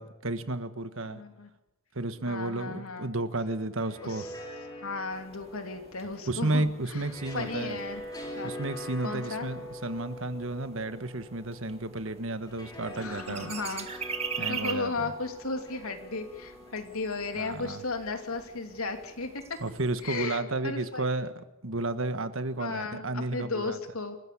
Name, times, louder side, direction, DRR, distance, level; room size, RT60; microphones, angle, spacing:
voice 1, 0.0-1.2 1.9-4.3 6.3-7.7 8.4-13.5 14.4-15.1 17.3-17.8 19.6-23.8, right 2 dB, 65° right, 11 dB, 1.5 m, -32 dB
voice 2, 1.0-1.5 2.3-3.1 4.0-4.3 4.8-8.0 8.4-8.5 9.0-9.5 12.9-13.9 14.4-19.4 20.0-21.1 22.6-24.2, left 3 dB, 80° left, 6 dB, 3.1 m, -35 dB
sound 1, 3.6-18.8, equal, 20° left, 5.5 m, -44 dB
sound 2, 5.1-20.3, right 6 dB, 30° right, 2.0 m, -44 dB
27.5 x 15.0 x 8.7 m, 0.93 s
head